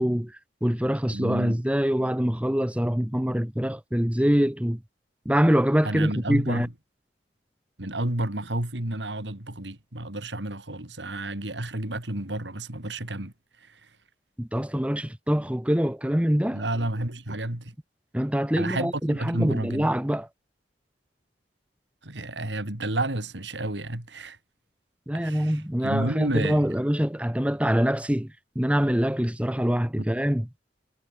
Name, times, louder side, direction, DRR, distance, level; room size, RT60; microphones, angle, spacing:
voice 1, 0.0-4.8 5.2-6.7 14.4-16.6 18.1-20.3 25.1-30.5, equal, 5° right, 1.2 m, -24 dB
voice 2, 1.1-1.6 5.8-6.7 7.8-13.3 13.6-13.8 16.5-17.7 18.6-19.9 22.0-24.4 25.1-26.7, right 1 dB, 85° right, 3.5 m, -30 dB
head